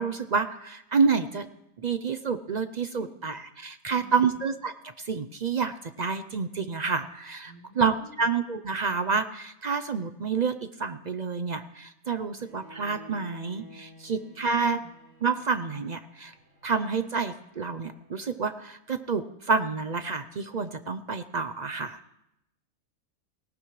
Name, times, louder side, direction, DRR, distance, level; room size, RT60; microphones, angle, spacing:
voice 1, 0.0-1.5 1.8-14.8 15.2-16.3 16.6-22.0, right 5 dB, 55° right, 10 dB, 0.4 m, -29 dB
voice 2, 2.9-3.3 3.8-4.3 7.4-8.3 14.0-14.9, equal, 30° left, -2 dB, 5.6 m, -51 dB
Bowed string instrument, 12.4-18.4, right 1 dB, 85° right, 5.5 m, -53 dB
19.0 x 17.5 x 3.2 m, 0.82 s
omnidirectional pair, 1.5 m